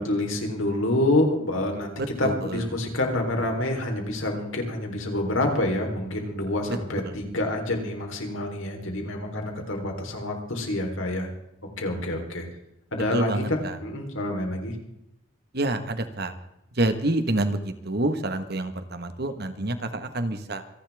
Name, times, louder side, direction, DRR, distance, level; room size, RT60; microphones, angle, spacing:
voice 1, 0.0-11.3 11.8-12.5 12.9-14.8, left 1 dB, 70° left, 2 dB, 3.8 m, -27 dB
voice 2, 2.2-2.6 7.0-7.2 13.1-13.8 15.5-16.3 16.7-20.6, right 1 dB, 50° right, 9 dB, 1.5 m, -27 dB
27.0 x 11.5 x 3.6 m, 0.82 s
head